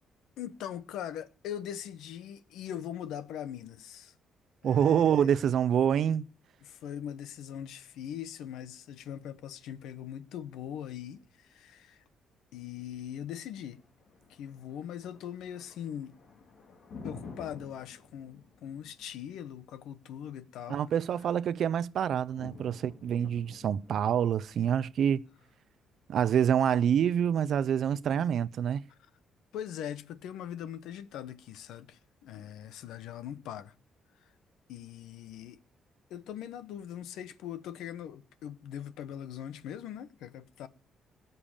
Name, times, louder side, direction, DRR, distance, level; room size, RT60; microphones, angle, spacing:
voice 1, 0.4-4.1 4.6-5.4 6.6-12.0 12.5-13.8 14.3-16.1 17.0-21.3 28.9-29.1 29.5-33.7 34.2-34.3 34.7-35.6 36.1-40.7, left 10 dB, 85° left, 1.0 m, -41 dB
voice 2, 4.6-6.2 20.7-25.2 26.1-28.8, right 9 dB, 65° right, 0.6 m, -26 dB
Thunder, 13.5-27.5, left 4 dB, 65° left, 3.2 m, -52 dB
18.5 x 6.9 x 7.2 m
cardioid pair, 90°, 0 cm